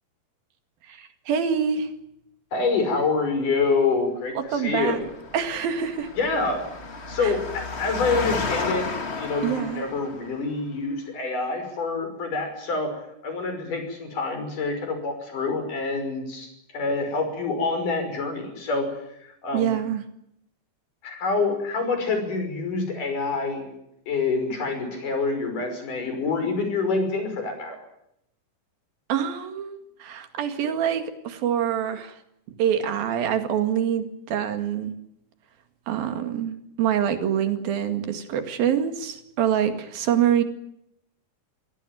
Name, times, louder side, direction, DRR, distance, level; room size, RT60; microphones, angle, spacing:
voice 1, 0.9-1.9 4.4-5.0 5.3-6.1 7.2-7.3 9.4-9.8 19.5-20.0 29.1-32.2 32.6-35.0 35.9-40.4, right 9 dB, 85° right, 8 dB, 3.9 m, -25 dB
voice 2, 2.5-5.0 6.2-6.6 7.1-8.9 9.2-12.9 13.2-18.9 19.2-19.7 21.0-23.7 24.1-27.8, left 4 dB, 65° left, 6 dB, 7.2 m, -26 dB
Engine, 4.7-10.4, left 3 dB, 30° left, 1.3 m, -32 dB
24.5 x 17.5 x 9.3 m, 0.79 s
omnidirectional pair, 4.1 m